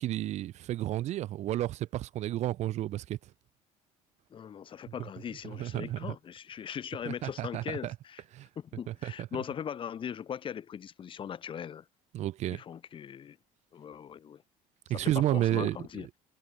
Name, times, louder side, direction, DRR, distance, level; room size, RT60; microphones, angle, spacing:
voice 1, 0.0-3.2 5.4-6.1 7.1-7.9 8.3-8.5 8.9-9.3 12.1-12.6 14.9-15.8, right 14 dB, 55° right, 0.9 m, -31 dB
voice 2, 4.3-8.2 8.6-11.9 12.5-13.4 13.7-14.4 14.9-16.1, left 8 dB, 40° left, 6.8 m, -40 dB
cardioid pair, 140°, 14 cm